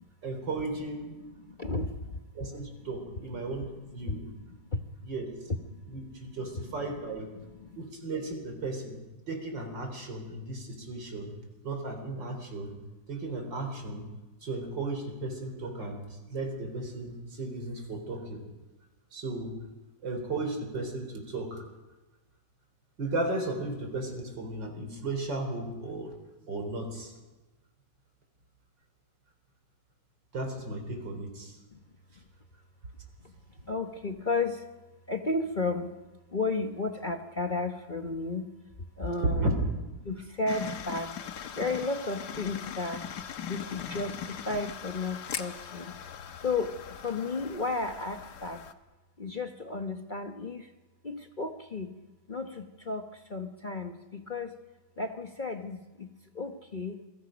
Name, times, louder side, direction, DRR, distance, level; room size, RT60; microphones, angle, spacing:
voice 1, 0.2-1.2 2.3-4.3 5.0-5.3 5.9-7.3 7.8-9.0 9.3-11.3 11.6-12.7 13.1-14.1 14.4-18.4 19.1-19.5 20.0-21.6 23.0-26.1 26.5-27.1 30.3-31.6 39.2-39.5, right 2 dB, 85° right, 4 dB, 4.6 m, -35 dB
voice 2, 1.3-2.2 2.5-2.6 3.1-3.4 3.9-4.8 5.5-5.8 6.4-6.7 7.3-7.8 31.7-31.8 33.6-34.7 35.1-36.0 36.3-38.5 39.0-39.5 40.0-41.1 41.5-43.1 43.5-45.9 46.4-48.6 49.2-50.7 51.0-52.0 52.3-54.6 55.0-57.0, left 3 dB, 35° left, 5 dB, 1.0 m, -33 dB
sound 1, 40.5-48.7, left 8 dB, 65° left, 1.6 m, -40 dB
27.5 x 23.5 x 5.2 m, 1.1 s
omnidirectional pair, 1.9 m